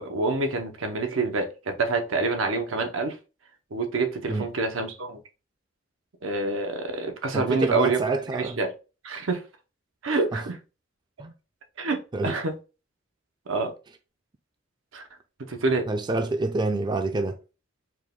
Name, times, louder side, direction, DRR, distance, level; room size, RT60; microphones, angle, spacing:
voice 1, 0.0-3.2 3.7-5.2 6.2-8.0 8.3-8.7 9.0-9.4 10.0-10.6 11.8-12.5 13.5-13.7 14.9-15.0 15.5-15.9, right 3 dB, 90° right, 0.7 m, -27 dB
voice 2, 7.3-8.6 10.3-10.4 11.2-11.3 12.1-12.4 15.9-17.4, right 2 dB, 20° right, 0.3 m, -27 dB
4.5 x 2.2 x 3.5 m
head